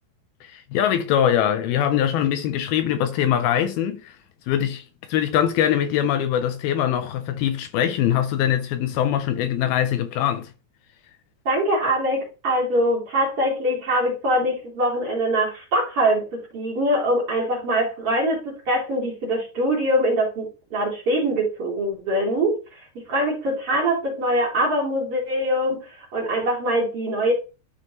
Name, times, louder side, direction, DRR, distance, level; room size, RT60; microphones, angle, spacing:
voice 1, 0.4-4.2 4.5-10.5, left 10 dB, 80° left, 2.4 m, -22 dB
voice 2, 11.4-22.6 23.1-27.3, right 1 dB, 40° right, 3.2 m, -23 dB
13.0 x 4.9 x 3.1 m
omnidirectional pair, 4.6 m